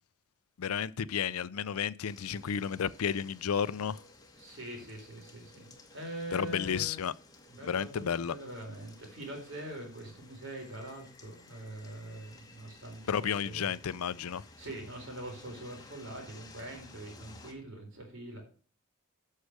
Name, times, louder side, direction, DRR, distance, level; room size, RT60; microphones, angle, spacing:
voice 1, 0.6-4.0 6.3-7.1 7.6-8.3 13.1-14.4, left 7 dB, 85° left, 0.5 m, -32 dB
sound 1, 2.0-17.5, left 2 dB, 15° left, 1.2 m, -56 dB
voice 2, 4.3-7.1 7.5-13.7 14.6-18.4, right 1 dB, 60° right, 4.1 m, -43 dB
8.1 x 6.6 x 6.6 m
head